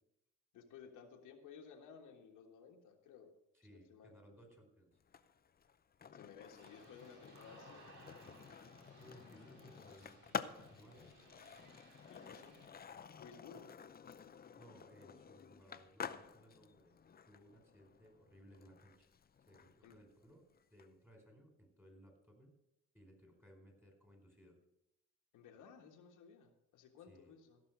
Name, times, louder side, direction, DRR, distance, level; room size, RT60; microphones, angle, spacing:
voice 1, 0.5-3.3 3.7-4.2 6.1-7.9 12.1-12.6 13.2-13.7 19.8-20.0 25.3-27.6, left 6 dB, 85° left, 2 dB, 1.5 m, -57 dB
voice 2, 3.5-4.9 9.0-10.2 10.6-11.1 14.5-16.9 17.3-19.1 19.5-22.6 22.9-24.6 27.1-27.3, equal, 10° right, 2 dB, 4.4 m, -62 dB
Skateboard, 5.0-20.9, left 7 dB, 30° left, 0.6 m, -51 dB
sound 1, 6.6-12.7, right 2 dB, 75° right, 3.7 m, -62 dB
15.5 x 6.1 x 6.1 m, 0.85 s
cardioid pair, 90°, 30 cm